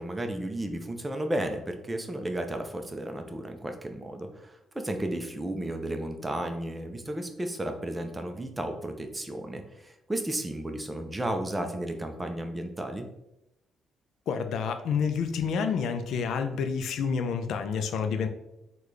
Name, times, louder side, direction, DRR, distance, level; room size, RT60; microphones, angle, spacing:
voice 1, 0.0-13.1, right 1 dB, 15° right, 5 dB, 0.5 m, -33 dB
voice 2, 14.3-18.3, left 6 dB, 75° left, 8 dB, 0.4 m, -29 dB
3.7 x 2.2 x 3.1 m, 0.88 s
cardioid pair, 90°, 0 cm